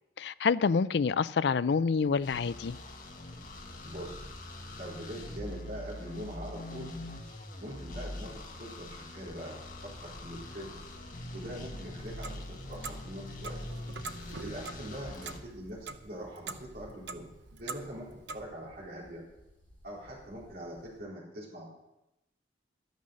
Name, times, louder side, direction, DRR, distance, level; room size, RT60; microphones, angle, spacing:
voice 1, 0.2-2.8, left 5 dB, 65° left, 0.4 m, -27 dB
sound 1, 1.9-21.0, equal, 10° left, 5.0 m, -57 dB
sound 2, 2.2-15.4, left 1 dB, 45° left, 1.9 m, -43 dB
voice 2, 3.8-4.2 4.8-6.9 7.6-9.6 9.8-10.8 11.3-13.6 14.4-17.3 17.6-19.2 19.8-21.7, equal, 55° right, 4.1 m, -43 dB
Clock, 12.0-18.5, right 4 dB, 75° right, 0.8 m, -45 dB
12.5 x 9.4 x 6.4 m
head